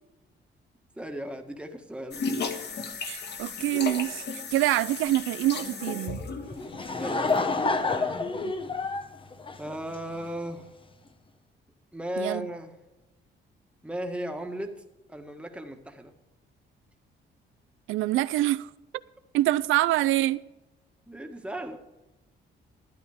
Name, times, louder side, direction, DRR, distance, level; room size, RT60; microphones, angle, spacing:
voice 1, 0.9-2.2 7.0-8.2 9.6-10.7 11.9-12.7 13.8-14.8 15.1-16.1 21.1-21.8, equal, 5° right, 1.8 m, -36 dB
sound 1, 2.1-7.9, left 4 dB, 60° left, 1.8 m, -35 dB
voice 2, 3.1-6.2 12.2-12.4 17.9-18.7 19.3-20.4, right 15 dB, 90° right, 0.4 m, -25 dB
Laughter / Crowd, 6.5-10.3, left 3 dB, 25° left, 1.1 m, -28 dB
12.5 x 9.8 x 5.0 m
cardioid pair, 90°, 20 cm